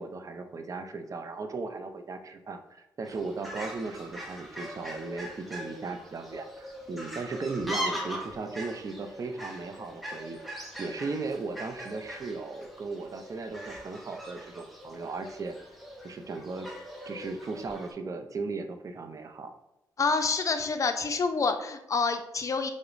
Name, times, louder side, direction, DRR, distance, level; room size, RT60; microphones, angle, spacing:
voice 1, 0.0-10.4 10.8-15.6 16.0-16.7 17.1-19.5, right 3 dB, 45° right, 6 dB, 0.5 m, -37 dB
Fowl, 3.0-17.9, equal, ahead, 0.7 m, -41 dB
voice 2, 20.0-22.7, left 4 dB, 45° left, 7 dB, 0.4 m, -27 dB
4.6 x 2.0 x 2.5 m, 0.92 s
supercardioid pair, 55°, 8 cm